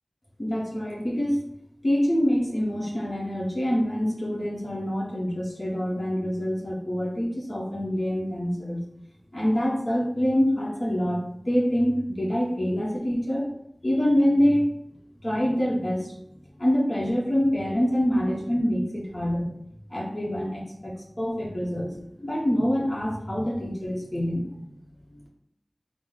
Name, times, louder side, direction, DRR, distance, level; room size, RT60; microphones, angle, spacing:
voice 1, 0.4-1.4 1.8-8.8 9.3-13.5 13.8-14.7 15.2-16.1 16.6-19.5 19.9-24.5, equal, 50° left, -5 dB, 1.0 m, -25 dB
5.0 x 2.0 x 3.9 m, 0.75 s
wide cardioid pair, 45°, 0 cm